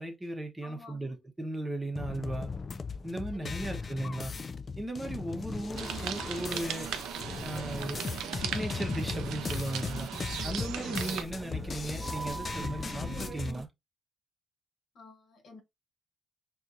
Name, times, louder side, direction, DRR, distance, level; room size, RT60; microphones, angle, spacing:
voice 1, 0.0-2.5 3.0-4.3 4.8-6.9 7.4-8.0 8.3-10.1 10.4-13.7, right 1 dB, 15° right, 0.9 m, -37 dB
voice 2, 0.6-1.2 3.3-3.6 14.9-15.6, left 3 dB, 60° left, 1.4 m, -51 dB
sound 1, 2.0-13.5, left 4 dB, 35° left, 0.3 m, -37 dB
sound 2, 5.6-13.7, right 4 dB, 35° right, 0.5 m, -44 dB
sound 3, 5.8-11.2, right 9 dB, 90° right, 0.5 m, -38 dB
4.1 x 2.5 x 2.5 m
cardioid pair, 90°, 0 cm